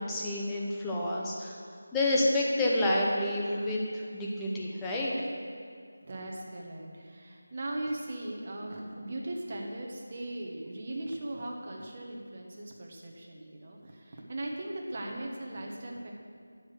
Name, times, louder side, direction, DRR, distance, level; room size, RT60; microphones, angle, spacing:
voice 1, 0.0-1.6 1.9-5.3, left 1 dB, 5° left, -5 dB, 0.8 m, -29 dB
voice 2, 6.0-16.1, right 1 dB, 35° right, -1 dB, 1.3 m, -39 dB
10.0 x 5.1 x 6.8 m, 2.3 s
figure-of-eight pair, 170°, 0 cm